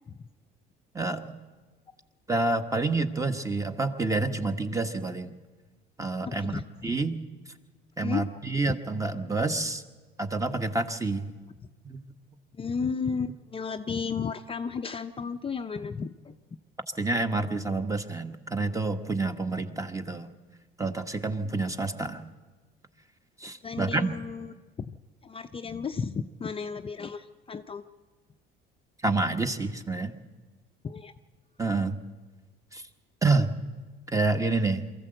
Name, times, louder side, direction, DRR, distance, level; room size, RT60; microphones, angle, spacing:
voice 1, 0.9-1.4 2.3-5.4 6.0-7.2 8.0-9.8 10.2-11.3 11.8-12.0 17.0-20.3 20.8-22.3 23.4-24.2 29.0-30.1 31.6-32.0 32.7-32.8 33.2-33.6 34.1-34.9, right 3 dB, 15° right, 8 dB, 1.3 m, -28 dB
voice 2, 6.2-6.6 8.0-8.3 12.6-16.3 23.6-24.5 24.9-25.0 25.2-27.8 30.8-31.1, left 5 dB, 25° left, 7 dB, 0.6 m, -33 dB
23.0 x 14.5 x 7.9 m, 1.3 s
supercardioid pair, 95°, 21 cm